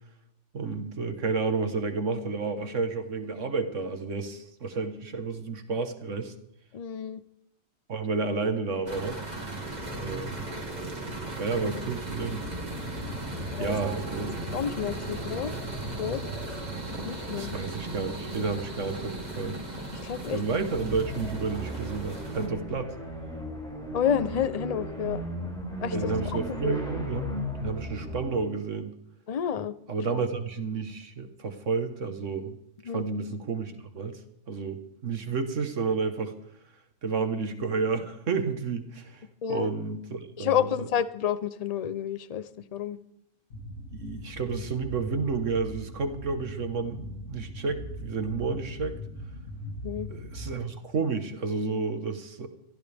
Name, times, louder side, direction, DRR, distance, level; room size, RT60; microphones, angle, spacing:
voice 1, 0.5-6.3 7.9-9.2 9.9-10.4 11.4-12.5 13.6-14.3 17.3-19.6 20.3-22.9 25.9-27.3 27.6-29.0 29.9-32.6 32.8-34.2 34.5-36.3 37.0-40.9 43.9-49.0 50.1-52.5, right 4 dB, 65° right, 8 dB, 1.7 m, -31 dB
voice 2, 6.7-7.2 13.5-13.8 14.5-15.5 16.0-16.2 17.0-17.5 20.0-20.4 23.9-25.2 25.8-26.8 29.3-29.7 32.9-33.1 39.4-39.7 40.4-43.0 49.8-50.1, left 8 dB, 40° left, 15 dB, 0.6 m, -30 dB
sound 1, 8.9-22.5, right 1 dB, 30° right, 2.4 m, -36 dB
sound 2, 20.7-28.4, equal, 5° left, 5.8 m, -36 dB
sound 3, 43.5-50.6, equal, 85° left, 2.2 m, -40 dB
23.0 x 14.0 x 3.5 m, 0.75 s
omnidirectional pair, 1.4 m